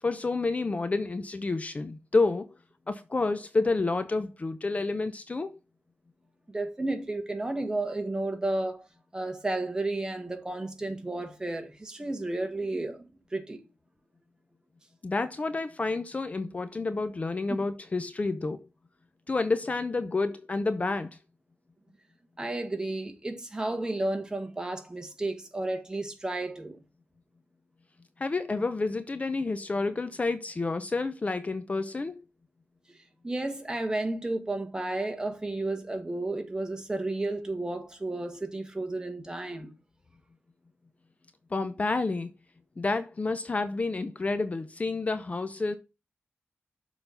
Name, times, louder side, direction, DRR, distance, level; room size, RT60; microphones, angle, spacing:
voice 1, 0.0-2.5 2.9-5.6 15.0-18.6 19.3-21.2 28.2-32.2 41.5-42.3 42.8-45.8, left 3 dB, 35° left, 0.6 m, -29 dB
voice 2, 6.5-8.8 9.1-13.6 22.4-26.8 33.2-39.7, right 2 dB, 15° right, 1.6 m, -32 dB
6.8 x 4.0 x 5.6 m
wide cardioid pair, 100°, 4 cm